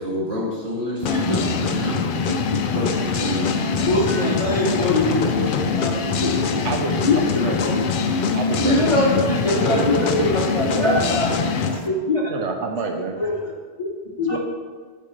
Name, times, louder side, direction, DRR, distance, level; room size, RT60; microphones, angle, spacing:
voice 1, 0.0-2.0 2.7-4.0, left 1 dB, 60° right, -6 dB, 2.3 m, -29 dB
sound 1, 1.0-11.8, left 5 dB, 60° left, 0.6 m, -23 dB
voice 2, 1.0-2.0 2.3-2.6 3.8-6.7 7.0-7.8 8.5-12.3 13.2-13.5 13.8-14.4, left 2 dB, 30° left, -2 dB, 0.9 m, -23 dB
voice 3, 6.6-7.8 8.3-8.8 9.1-9.2 9.7-11.0 12.3-13.2 14.3-14.4, right 4 dB, 85° right, 4 dB, 1.0 m, -28 dB
8.5 x 5.7 x 3.2 m, 1.5 s
omnidirectional pair, 1.2 m